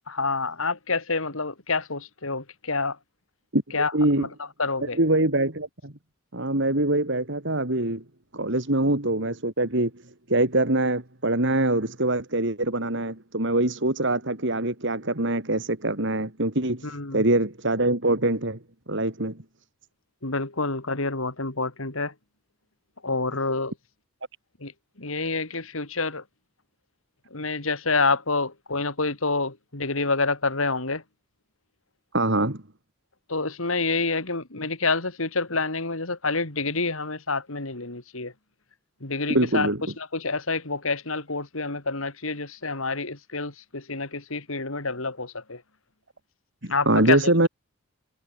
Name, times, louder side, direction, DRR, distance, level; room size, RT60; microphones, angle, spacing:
voice 1, 0.1-3.0 3.7-3.9 4.2-4.3 4.6-5.0 16.8-17.2 20.2-22.1 23.0-23.7 24.6-24.7 25.0-26.2 27.3-31.0 33.3-38.3 39.0-39.7 40.0-45.6 46.7-47.2, left 3 dB, 75° left, 3.2 m, -28 dB
voice 2, 3.5-4.3 4.8-5.9 6.3-8.0 8.3-9.9 10.3-18.6 18.9-19.4 32.1-32.6 39.3-39.8 46.6-47.5, right 2 dB, 60° right, 3.4 m, -24 dB
head